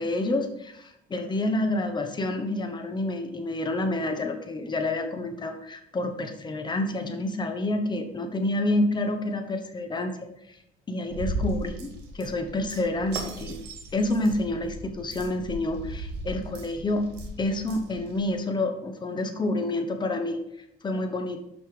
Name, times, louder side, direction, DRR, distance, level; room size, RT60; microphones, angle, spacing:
voice 1, 0.0-10.1 10.5-10.6 10.9-13.6 13.9-17.0 17.4-20.4 20.8-21.4, left 2 dB, 25° left, 5 dB, 1.1 m, -28 dB
sound 1, 11.1-18.3, right 1 dB, 80° right, 1.8 m, -37 dB
5.8 x 5.8 x 5.0 m, 0.79 s
cardioid pair, 110°, 17 cm